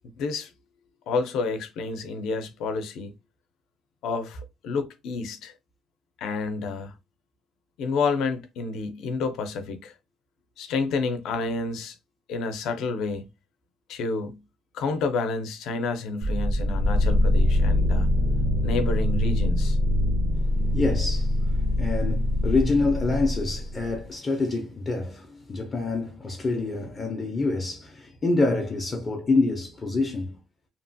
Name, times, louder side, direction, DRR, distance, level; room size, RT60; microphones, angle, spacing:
voice 1, 0.2-0.5 1.1-3.1 4.0-5.5 6.2-6.9 7.8-9.9 10.6-12.0 12.3-13.3 13.9-14.4 14.7-18.1 18.6-19.8, left 4 dB, 75° left, 0.5 m, -29 dB
sound 1, 16.2-24.0, left 1 dB, 45° right, 0.5 m, -23 dB
voice 2, 20.7-30.4, left 3 dB, 25° left, 0.4 m, -26 dB
2.9 x 2.2 x 2.6 m
cardioid pair, 160°, 0 cm